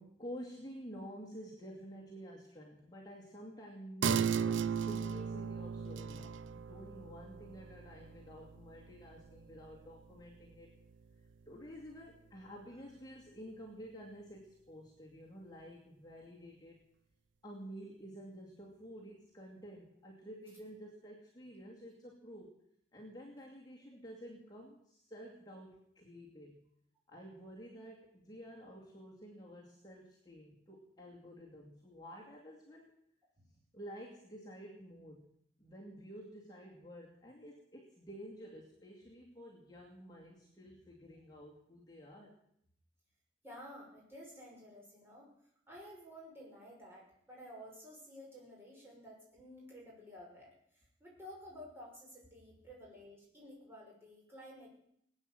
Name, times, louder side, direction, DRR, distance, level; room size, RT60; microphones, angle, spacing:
voice 1, 0.0-10.7 11.5-16.8 17.4-22.5 22.9-26.6 27.1-32.9 33.7-35.3 35.6-42.3, equal, 20° left, -3 dB, 2.4 m, -51 dB
sound 1, 4.0-11.0 11.4-11.5, right 6 dB, 75° right, 0.6 m, -37 dB
voice 2, 43.4-45.3 45.7-54.7, equal, 10° right, -4 dB, 6.2 m, -53 dB
20.0 x 9.1 x 7.9 m, 0.71 s
head